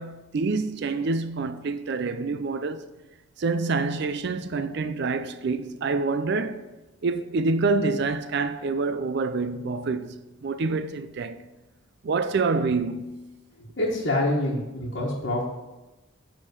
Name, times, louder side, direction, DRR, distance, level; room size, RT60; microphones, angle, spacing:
voice 1, 0.0-2.9 3.4-6.7 7.0-11.4 12.0-13.2, right 3 dB, 50° right, 0.4 m, -27 dB
voice 2, 13.8-15.4, left 1 dB, 55° left, 1.4 m, -26 dB
9.7 x 3.6 x 6.6 m
head